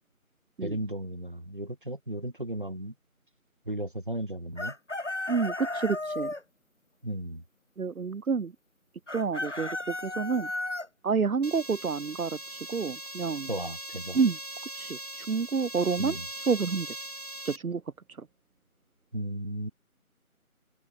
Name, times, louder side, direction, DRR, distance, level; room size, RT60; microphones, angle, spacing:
voice 1, 0.6-2.9 3.7-4.8 7.0-7.4 13.5-14.2 16.0-16.3 19.1-19.7, right 1 dB, 35° right, 3.5 m, -35 dB
Chicken rooster, 4.6-6.4 9.1-10.9, left 2 dB, 50° left, 1.3 m, -34 dB
voice 2, 5.3-6.3 7.8-8.5 9.1-10.5 11.0-13.5 14.1-14.4 14.8-16.2 16.5-16.9 17.5-17.8, right 5 dB, 75° right, 0.7 m, -29 dB
sound 1, 11.4-17.6, right 1 dB, 90° right, 4.2 m, -40 dB
open air
figure-of-eight pair, 175°, 44 cm